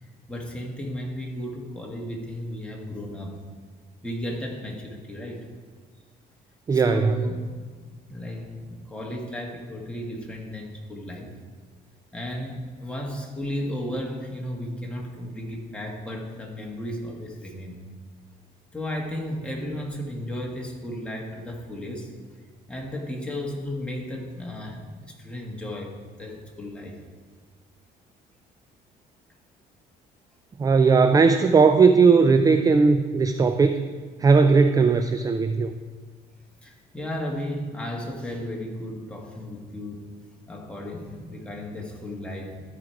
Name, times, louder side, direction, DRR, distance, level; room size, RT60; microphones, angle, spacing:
voice 1, 0.0-3.3 4.0-5.5 6.7-7.5 8.1-11.3 12.1-17.8 18.7-22.1 22.7-27.0 36.6-40.0 40.5-42.6, left 1 dB, 5° left, -1 dB, 1.8 m, -34 dB
voice 2, 6.7-7.2 30.6-33.9 34.2-35.7, right 4 dB, 20° right, 9 dB, 0.4 m, -18 dB
13.5 x 5.0 x 4.6 m, 1.5 s
cardioid pair, 110°, 17 cm